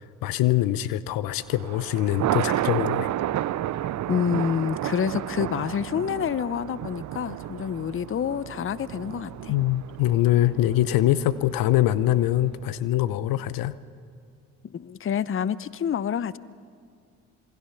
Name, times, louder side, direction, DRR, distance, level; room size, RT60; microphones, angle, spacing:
voice 1, 0.2-3.1 9.5-13.8, left 14 dB, 70° left, 0.8 m, -23 dB
Thunder, 1.4-12.7, right 13 dB, 50° right, 0.6 m, -32 dB
voice 2, 4.1-9.5 14.6-16.4, left 8 dB, 35° left, 0.7 m, -28 dB
27.0 x 21.5 x 5.8 m
hypercardioid pair, 45°, 36 cm